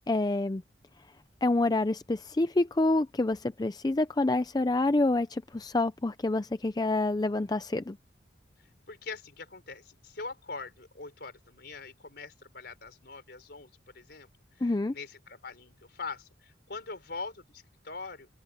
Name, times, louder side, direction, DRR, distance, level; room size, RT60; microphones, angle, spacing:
voice 1, 0.1-0.6 1.4-8.0 14.6-14.9, left 2 dB, 20° left, 0.4 m, -27 dB
voice 2, 8.9-14.3 14.6-18.3, left 4 dB, 55° left, 4.8 m, -43 dB
head